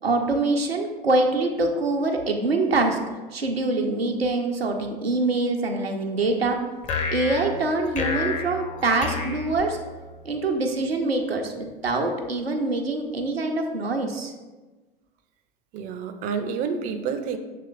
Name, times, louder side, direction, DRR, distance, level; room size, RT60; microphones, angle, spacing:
voice 1, 0.0-3.0 3.3-6.6 7.1-9.8 10.2-14.3, right 2 dB, 90° right, 2 dB, 0.6 m, -24 dB
sound 1, 6.8-10.3, left 4 dB, 25° left, 0.5 m, -30 dB
voice 2, 15.7-17.4, right 6 dB, 30° right, 7 dB, 0.4 m, -29 dB
7.6 x 3.0 x 2.3 m, 1.2 s
figure-of-eight pair, 85°, 30 cm